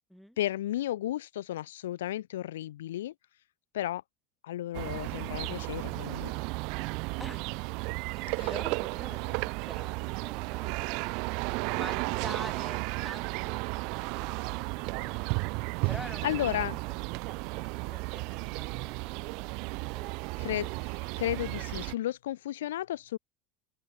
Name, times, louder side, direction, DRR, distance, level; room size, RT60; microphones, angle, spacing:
voice 1, 0.4-3.1 3.7-4.0 4.4-6.3 8.4-8.5 16.2-16.8 20.4-23.2, left 13 dB, 70° left, 0.8 m, -33 dB
sound 1, 4.7-22.0, right 30 dB, 60° right, 1.2 m, -34 dB
voice 2, 8.1-11.0 11.6-15.2 15.9-16.3 16.7-16.8 17.2-20.5, equal, ahead, 2.4 m, -47 dB
open air
figure-of-eight pair, 75°, 0 cm